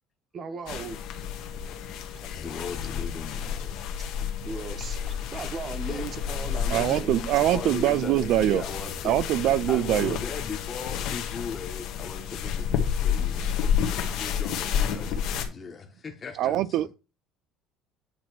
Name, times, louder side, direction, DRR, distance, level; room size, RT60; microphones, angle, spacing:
voice 1, 0.3-1.0 4.4-7.6, right 5 dB, 30° right, 1.0 m, -37 dB
sound 1, 0.7-15.4, left 8 dB, 65° left, 1.2 m, -30 dB
voice 2, 2.2-3.8 4.2-4.3 5.9-6.1 6.6-7.0 7.4-9.2 9.7-16.9, left 5 dB, 25° left, 1.1 m, -38 dB
voice 3, 6.7-8.6 9.0-10.2 16.4-17.0, right 13 dB, 60° right, 0.4 m, -23 dB
8.7 x 3.1 x 6.0 m
cardioid pair, 150°, 0 cm